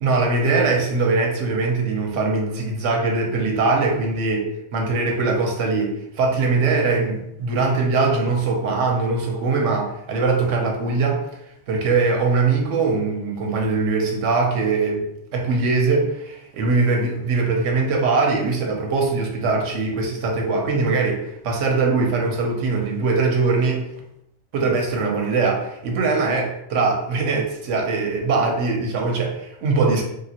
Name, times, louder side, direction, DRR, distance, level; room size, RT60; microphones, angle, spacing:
voice 1, 0.0-11.2 11.7-15.0 15.3-23.8 24.5-30.0, right 3 dB, 90° right, 1 dB, 1.1 m, -21 dB
3.3 x 2.8 x 2.8 m, 0.80 s
omnidirectional pair, 1.2 m